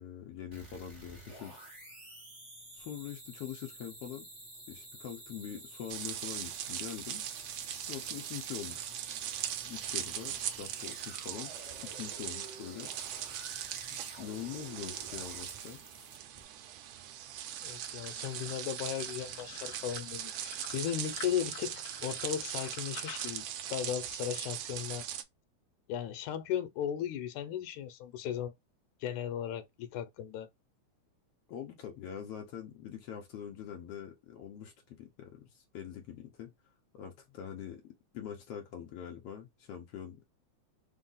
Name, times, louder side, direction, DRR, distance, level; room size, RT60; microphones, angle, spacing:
voice 1, 0.0-1.6 2.7-4.3 4.7-7.3 7.9-8.9 9.7-11.6 11.8-12.9 13.9-15.8 31.5-36.5 36.9-40.2, left 9 dB, 75° left, 1.5 m, -44 dB
sound 1, 0.5-16.4, right 1 dB, 60° right, 0.4 m, -51 dB
sound 2, 5.9-25.2, right 11 dB, 80° right, 1.8 m, -40 dB
sound 3, 17.5-23.4, left 4 dB, 40° left, 1.4 m, -50 dB
voice 2, 17.6-25.1 25.9-28.5 29.0-30.5, left 10 dB, 90° left, 2.0 m, -36 dB
4.7 x 2.0 x 3.8 m
omnidirectional pair, 3.3 m